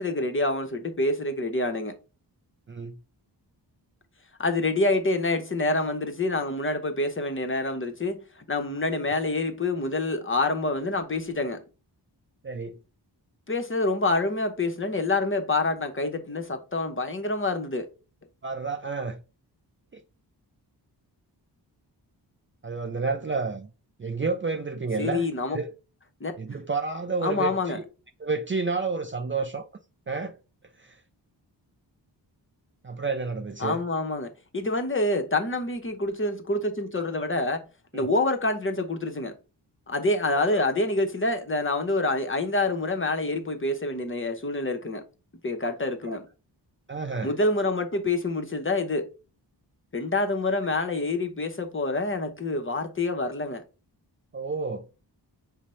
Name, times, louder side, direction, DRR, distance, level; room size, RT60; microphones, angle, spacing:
voice 1, 0.0-1.9 4.4-11.6 13.5-17.9 25.0-25.6 26.2-26.3 27.2-27.8 33.6-37.6 37.9-39.3 39.9-45.0 45.4-46.2 47.2-49.1 49.9-53.6, left 2 dB, 30° left, 0.7 m, -27 dB
voice 2, 12.4-12.8 18.4-19.2 22.6-23.7 24.0-25.7 26.4-27.8 28.2-29.6 30.1-30.3 30.8-31.0 32.8-33.8 37.9-38.1 40.4-40.6 46.0-46.2 46.9-47.3 54.3-54.9, right 4 dB, 30° right, 0.4 m, -30 dB
4.9 x 2.0 x 4.2 m
cardioid pair, 70°, 43 cm